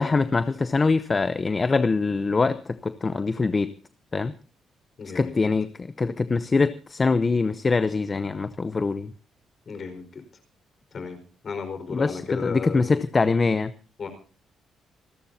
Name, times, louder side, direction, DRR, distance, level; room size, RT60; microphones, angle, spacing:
voice 1, 0.0-3.7 4.1-4.3 5.1-9.1 11.9-13.7, left 4 dB, 30° left, 13 dB, 0.7 m, -23 dB
voice 2, 5.0-5.3 9.7-10.0 10.9-11.2 11.4-13.0 14.0-14.1, left 5 dB, 45° left, 8 dB, 4.7 m, -33 dB
27.5 x 13.0 x 2.8 m, 0.37 s
cardioid pair, 90°, 0 cm